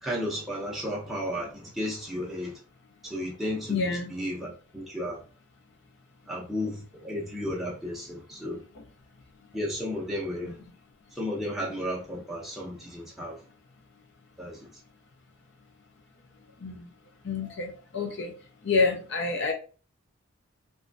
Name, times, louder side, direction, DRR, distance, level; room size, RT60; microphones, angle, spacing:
voice 1, 0.0-2.6 3.0-5.2 6.3-8.6 9.5-10.6 11.1-13.4 14.4-14.8, equal, ahead, 0.5 m, -33 dB
voice 2, 3.7-4.1 16.6-16.8 17.2-18.3 18.6-19.5, left 4 dB, 55° left, 0.5 m, -28 dB
3.0 x 2.2 x 2.5 m
head